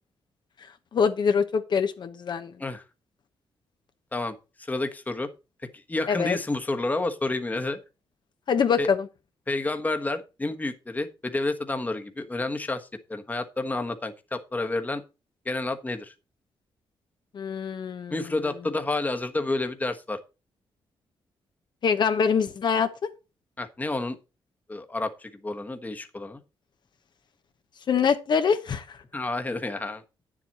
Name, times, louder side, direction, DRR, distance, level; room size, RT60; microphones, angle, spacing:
voice 1, 0.9-2.5 6.1-6.4 8.5-9.1 17.3-18.2 21.8-22.9 27.9-29.0, left 6 dB, 55° left, 1.1 m, -24 dB
voice 2, 4.1-5.3 5.7-7.8 8.8-8.9 9.5-15.0 15.4-16.1 18.1-20.2 23.6-24.2 24.7-26.4 29.1-30.0, left 2 dB, 15° left, 1.3 m, -30 dB
9.6 x 7.5 x 4.2 m
cardioid pair, 100°, 9 cm